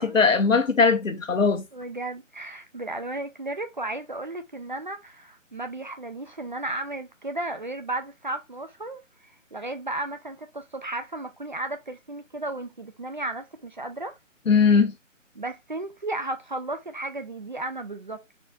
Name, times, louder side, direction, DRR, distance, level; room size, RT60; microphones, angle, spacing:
voice 1, 0.0-1.6 14.5-14.9, left 5 dB, 80° left, 1.2 m, -20 dB
voice 2, 1.7-14.2 15.3-18.4, right 2 dB, 40° right, 0.4 m, -34 dB
4.3 x 2.4 x 3.9 m
figure-of-eight pair, 155°, 39 cm